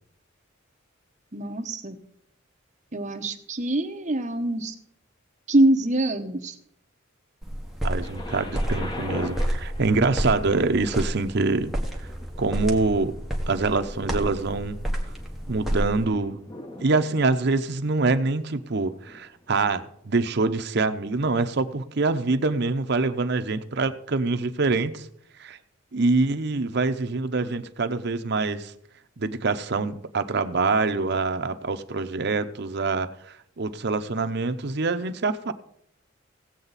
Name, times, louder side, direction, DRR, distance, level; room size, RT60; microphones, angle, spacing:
voice 1, 1.3-2.0 2.9-4.7 5.5-6.5, right 1 dB, 35° right, 5 dB, 1.0 m, -24 dB
sound 1, 7.4-16.1, equal, ahead, 1.3 m, -30 dB
voice 2, 7.8-11.7 12.4-13.1 13.5-14.8 15.5-16.4 16.8-25.1 25.4-25.6 25.9-28.7 29.2-35.5, right 3 dB, 55° right, 9 dB, 0.7 m, -25 dB
Thunder, 8.0-19.9 20.6-20.7, left 1 dB, 20° left, 1.1 m, -42 dB
17.0 x 7.8 x 4.1 m, 0.72 s
head